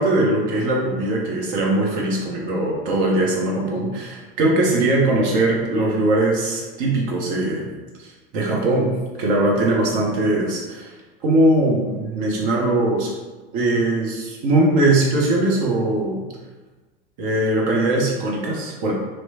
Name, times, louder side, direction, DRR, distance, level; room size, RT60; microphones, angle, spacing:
voice 1, 0.0-7.7 8.0-8.9 9.2-10.9 11.2-13.1 13.5-16.3 17.2-18.9, right 2 dB, 55° right, -2 dB, 0.9 m, -20 dB
3.0 x 2.1 x 2.7 m, 1.2 s
hypercardioid pair, 85°, 29 cm